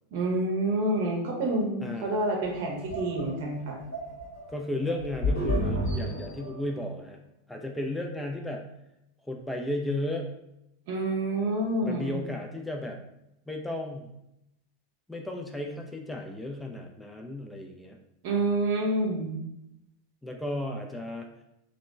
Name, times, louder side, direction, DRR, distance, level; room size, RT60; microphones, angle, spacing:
voice 1, 0.1-3.8 10.9-12.2 18.2-19.4, right 2 dB, 55° right, -1 dB, 0.7 m, -28 dB
voice 2, 1.8-2.1 4.5-7.2 7.5-8.6 9.2-10.3 11.8-13.0 13.5-14.1 15.1-18.0 20.2-21.3, left 1 dB, 5° left, 2 dB, 0.3 m, -34 dB
sound 1, 2.4-6.8, left 1 dB, 65° left, 1.0 m, -31 dB
2.8 x 2.1 x 2.3 m, 0.83 s
figure-of-eight pair, 85°, 0 cm